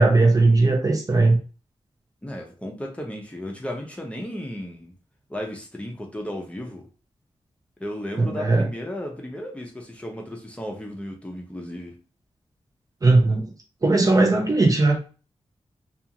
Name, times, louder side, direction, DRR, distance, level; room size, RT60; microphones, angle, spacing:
voice 1, 0.0-1.4 8.2-8.7 13.0-13.5 13.8-15.1, right 2 dB, 35° right, 2 dB, 0.5 m, -18 dB
voice 2, 2.2-4.9 5.3-6.9 7.8-11.9, left 1 dB, 10° left, 1 dB, 0.6 m, -34 dB
2.5 x 2.4 x 2.8 m, 0.36 s
wide cardioid pair, 115°, 11 cm